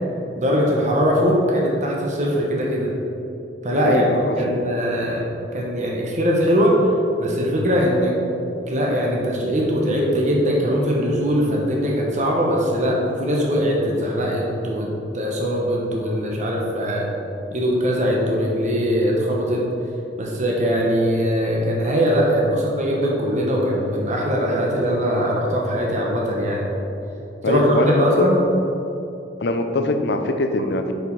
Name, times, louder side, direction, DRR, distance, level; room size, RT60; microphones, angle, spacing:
voice 1, 0.3-2.9 3.6-4.0 4.4-5.2 5.5-6.8 7.2-8.1 8.7-14.9 15.1-17.1 17.5-19.6 20.2-26.6 27.5-28.4, equal, 40° right, -2 dB, 1.1 m, -21 dB
voice 2, 3.8-4.6 27.4-28.3 29.4-30.9, left 2 dB, 65° left, 6 dB, 0.7 m, -22 dB
7.8 x 4.9 x 5.5 m, 2.8 s
head